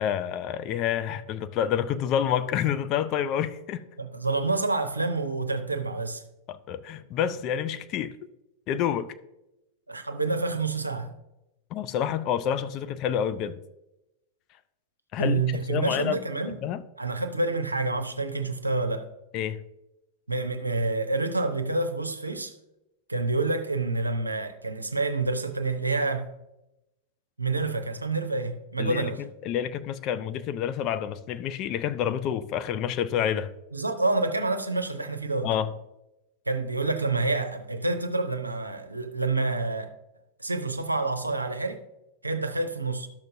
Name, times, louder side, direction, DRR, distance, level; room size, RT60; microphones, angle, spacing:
voice 1, 0.0-3.8 6.5-8.1 8.7-9.1 11.7-13.6 15.1-16.2 16.6-16.8 19.3-19.6 28.8-29.1 29.4-33.5 35.4-35.7, left 9 dB, 40° left, 0.4 m, -28 dB
voice 2, 4.0-6.2 9.9-11.1 15.2-16.6 17.0-19.1 20.3-22.5 23.1-26.3 27.4-29.2 33.7-35.5 36.5-39.9 40.4-41.8 42.2-43.1, right 3 dB, 85° right, 0.6 m, -28 dB
11.5 x 6.6 x 2.6 m
figure-of-eight pair, 90°, 0 cm